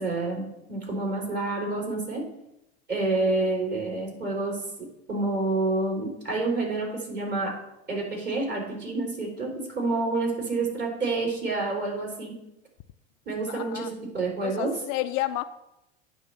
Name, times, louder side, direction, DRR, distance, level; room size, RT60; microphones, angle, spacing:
voice 1, 0.0-2.2 2.9-4.6 5.1-7.5 7.9-12.3 13.3-14.7, right 3 dB, 30° right, -2 dB, 3.6 m, -28 dB
voice 2, 13.5-13.9 14.4-15.4, left 15 dB, 50° left, 10 dB, 0.4 m, -30 dB
9.8 x 3.4 x 6.9 m, 0.86 s
hypercardioid pair, 100°, 33 cm